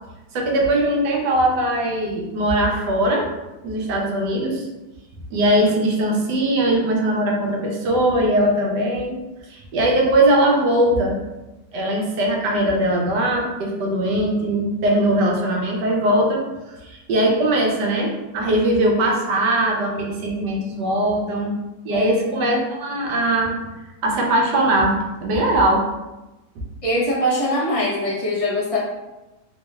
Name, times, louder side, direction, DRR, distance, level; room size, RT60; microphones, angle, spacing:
voice 1, 0.3-3.3 3.6-4.7 5.3-9.1 9.5-11.2 11.7-16.4 16.7-21.5 21.8-23.6 24.0-24.9 25.2-25.9, right 1 dB, 80° right, 0 dB, 1.2 m, -20 dB
voice 2, 21.9-22.5 26.8-28.8, equal, 35° left, -7 dB, 0.5 m, -23 dB
3.5 x 3.0 x 2.3 m, 1.0 s
omnidirectional pair, 1.9 m